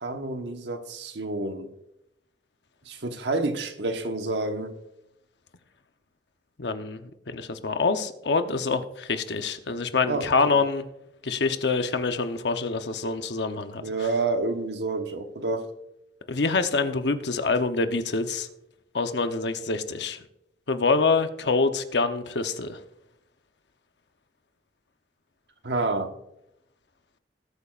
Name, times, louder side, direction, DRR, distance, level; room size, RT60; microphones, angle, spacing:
voice 1, 0.0-1.7 2.8-4.8 10.1-10.6 13.7-15.7 25.6-26.1, right 3 dB, 85° right, 1.2 m, -29 dB
voice 2, 6.6-10.8 11.2-13.8 16.3-18.5 18.9-20.2 20.7-22.8, left 4 dB, 80° left, 0.8 m, -26 dB
19.5 x 8.2 x 2.5 m
head